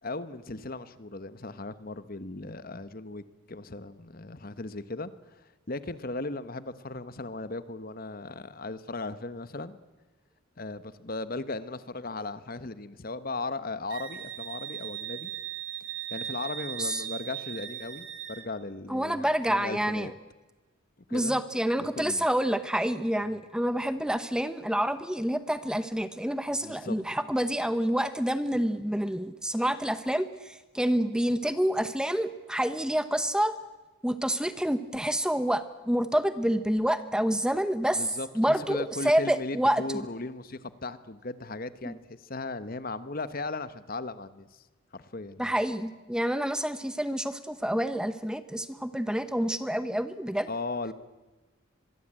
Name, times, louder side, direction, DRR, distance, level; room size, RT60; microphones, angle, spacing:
voice 1, 0.0-5.1 5.7-9.8 10.6-15.3 16.1-20.1 21.1-21.4 21.8-22.3 23.2-23.4 26.6-27.0 37.9-44.5 44.9-45.5 50.5-50.9, left 2 dB, 45° left, 14 dB, 1.1 m, -37 dB
Wind instrument woodwind instrument, 13.9-18.5, right 11 dB, 65° right, 2.8 m, -38 dB
voice 2, 18.9-20.1 21.1-33.5 34.0-38.1 38.4-39.8 41.9-42.0 45.4-50.5, equal, 5° right, 12 dB, 0.9 m, -28 dB
25.0 x 22.0 x 8.9 m, 1.2 s
head